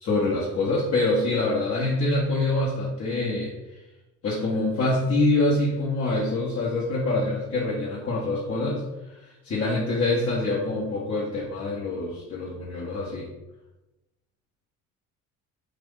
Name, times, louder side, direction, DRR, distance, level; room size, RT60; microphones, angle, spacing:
voice 1, 0.0-3.5 4.2-8.8 9.1-13.3, left 2 dB, 45° left, -5 dB, 0.8 m, -25 dB
2.9 x 2.5 x 3.5 m, 1.0 s
hypercardioid pair, 65°, 34 cm